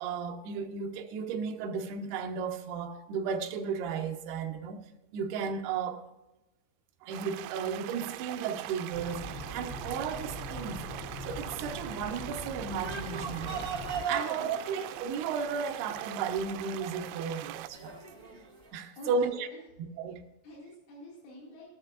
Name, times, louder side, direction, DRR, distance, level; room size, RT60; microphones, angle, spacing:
voice 1, 0.0-4.9 5.1-6.1 7.0-10.9 11.2-13.7 14.1-18.0 18.7-19.5 20.0-20.3, right 5 dB, 70° right, 2.7 m, -34 dB
sound 1, 7.1-17.7, right 16 dB, 85° right, 3.0 m, -42 dB
sound 2, 8.9-14.0, equal, 30° left, 1.0 m, -41 dB
sound 3, 12.7-18.7, right 5 dB, 55° right, 0.8 m, -41 dB
voice 2, 14.1-14.6 19.0-19.6 20.4-21.7, left 1 dB, 75° left, 4.7 m, -47 dB
16.5 x 13.0 x 2.5 m
omnidirectional pair, 5.4 m